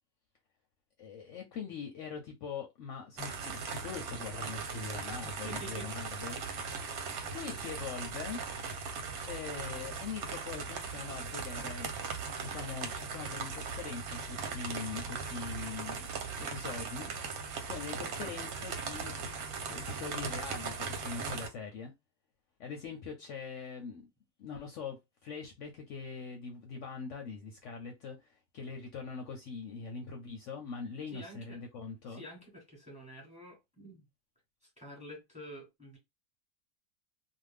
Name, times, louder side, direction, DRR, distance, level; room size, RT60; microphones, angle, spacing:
voice 1, 1.0-6.4 7.3-8.4 9.3-11.9 12.4-19.1 19.7-21.9 22.6-24.1 24.4-32.2, left 5 dB, 65° left, 0.8 m, -42 dB
sound 1, 3.2-21.5, right 5 dB, 85° right, 1.2 m, -39 dB
voice 2, 5.1-5.9 31.1-31.6 32.1-34.0 34.6-36.0, right 1 dB, 5° right, 1.1 m, -49 dB
2.5 x 2.2 x 3.3 m
omnidirectional pair, 1.5 m